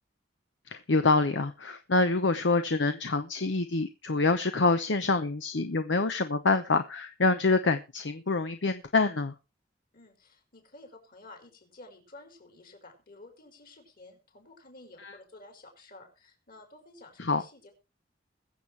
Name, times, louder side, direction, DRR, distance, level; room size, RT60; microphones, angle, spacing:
voice 1, 0.7-9.3 15.0-15.1 17.2-17.4, left 3 dB, 75° left, 8 dB, 0.8 m, -26 dB
voice 2, 9.9-17.7, left 2 dB, 50° left, 4 dB, 4.8 m, -52 dB
22.0 x 7.4 x 3.3 m, 0.30 s
head